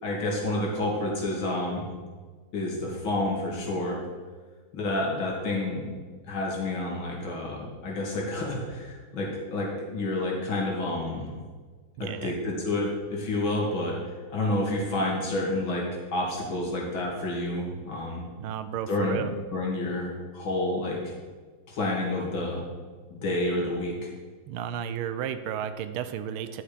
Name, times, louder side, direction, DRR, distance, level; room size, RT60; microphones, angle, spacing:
voice 1, 0.0-1.9 2.5-4.0 4.7-5.9 6.3-11.4 12.0-15.9 16.1-18.3 18.9-21.1 21.7-22.6 23.1-24.1, left 1 dB, 70° left, -2 dB, 2.8 m, -29 dB
voice 2, 12.0-12.4 18.4-19.3 24.5-26.6, right 9 dB, 85° right, 11 dB, 1.5 m, -33 dB
11.0 x 6.1 x 4.9 m, 1.5 s
omnidirectional pair, 2.3 m